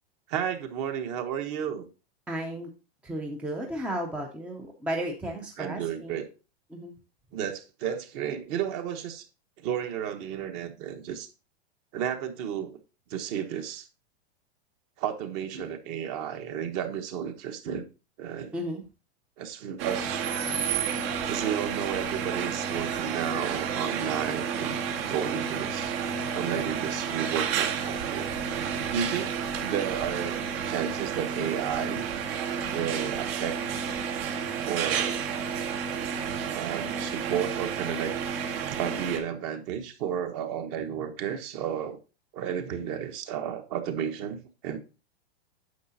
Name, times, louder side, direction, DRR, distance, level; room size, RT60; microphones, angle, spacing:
voice 1, 0.3-1.9 5.6-6.3 7.3-9.2 9.6-11.3 11.9-12.8 13.1-13.9 15.0-17.8 18.2-18.5 19.4-20.2 21.3-25.9 26.3-28.3 28.9-29.3 29.6-30.4 30.7-32.0 32.7-33.6 34.6-35.1 36.5-38.1 38.7-42.0 42.3-44.8, right 9 dB, 40° right, 1.1 m, -32 dB
voice 2, 2.3-2.7 3.0-6.2 6.7-6.9 18.5-18.8, right 1 dB, 5° right, 0.5 m, -34 dB
sound 1, 19.8-39.2, right 7 dB, 65° right, 1.7 m, -31 dB
9.3 x 6.6 x 2.7 m
supercardioid pair, 155°, 32 cm